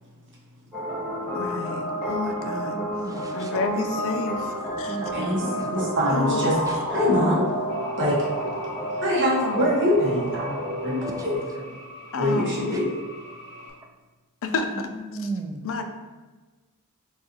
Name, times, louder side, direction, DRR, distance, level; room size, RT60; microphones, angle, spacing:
sound 1, 0.7-11.4, equal, ahead, 1.1 m, -30 dB
voice 1, 1.3-2.8 3.3-5.0 6.1-6.6 9.4-9.7 12.1-12.9 14.4-14.7 15.6-15.8, left 3 dB, 60° left, 6 dB, 0.4 m, -30 dB
voice 2, 2.7-3.5 4.8-5.7 6.1-6.2 6.7-6.8 11.1-11.3 12.7-12.8 13.8-13.9 14.7-15.8, right 3 dB, 15° right, 3 dB, 0.3 m, -35 dB
voice 3, 5.7-7.5 7.9-8.3 8.9-11.3 11.6-11.7 12.2-12.9, equal, 55° right, -3 dB, 0.8 m, -24 dB
sound 2, 7.7-13.7, left 1 dB, 45° left, 0.9 m, -44 dB
6.2 x 2.4 x 2.8 m, 1.3 s
head